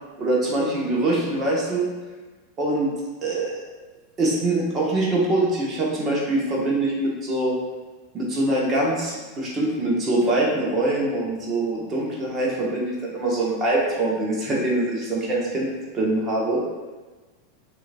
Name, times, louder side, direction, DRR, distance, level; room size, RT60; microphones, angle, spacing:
voice 1, 0.2-1.9 2.6-2.9 3.2-3.6 4.2-7.5 8.1-16.6, right 2 dB, 25° right, -4 dB, 1.2 m, -23 dB
6.2 x 2.7 x 2.6 m, 1.2 s
figure-of-eight pair, 85°, 0 cm